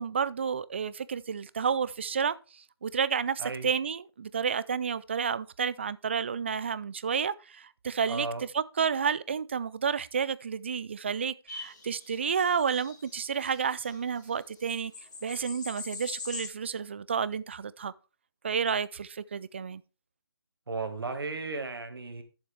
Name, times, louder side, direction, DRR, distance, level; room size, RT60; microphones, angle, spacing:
voice 1, 0.0-2.3 2.8-8.3 8.5-14.9 15.2-17.9 18.4-19.8, right 6 dB, 30° right, 0.4 m, -30 dB
voice 2, 3.4-3.7 8.1-8.4 20.7-22.2, right 3 dB, 70° right, 1.8 m, -35 dB
sound 1, 11.5-14.0 14.3-14.4 14.6-16.5, left 3 dB, 50° left, 2.4 m, -43 dB
11.0 x 7.2 x 3.4 m
figure-of-eight pair, 155°, 13 cm